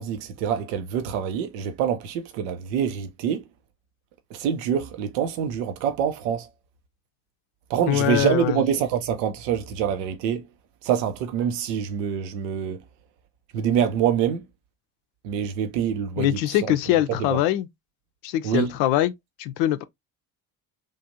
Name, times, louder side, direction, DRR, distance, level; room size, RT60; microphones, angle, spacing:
voice 1, 0.0-3.4 4.3-6.5 7.7-10.4 10.8-12.8 13.5-14.4 15.2-17.0 17.3-17.4 18.4-18.7, right 8 dB, 80° right, 0.7 m, -25 dB
voice 2, 7.9-8.6 16.2-17.7 18.2-19.1 19.4-19.8, left 13 dB, 70° left, 0.5 m, -23 dB
3.3 x 2.5 x 2.6 m
hypercardioid pair, 50°, 49 cm